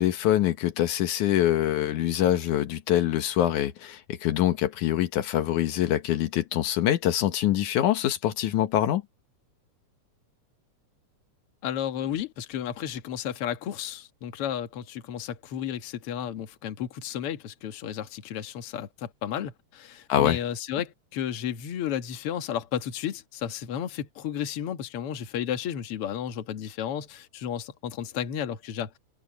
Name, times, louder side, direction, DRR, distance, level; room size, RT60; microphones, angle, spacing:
voice 1, 0.0-9.0 20.1-20.4, left 12 dB, 85° left, 2.7 m, -24 dB
voice 2, 11.6-29.0, left 9 dB, 55° left, 2.2 m, -33 dB
omnidirectional pair, 3.4 m